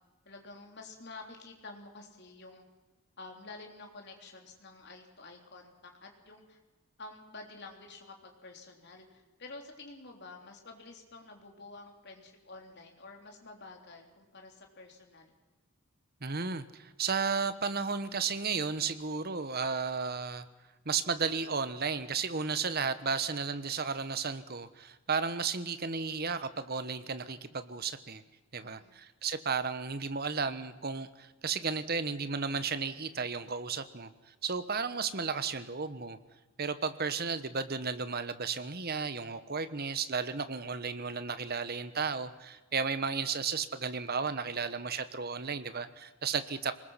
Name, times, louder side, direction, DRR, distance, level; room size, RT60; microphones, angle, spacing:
voice 1, 0.3-2.6 3.2-6.6 7.0-15.3 28.6-28.9, left 3 dB, 50° left, 2 dB, 3.6 m, -49 dB
voice 2, 16.2-20.4 20.8-28.2 28.5-34.1 34.4-36.2 36.6-46.7, right 5 dB, 45° right, 12 dB, 1.2 m, -33 dB
24.0 x 20.5 x 5.8 m, 1.2 s
head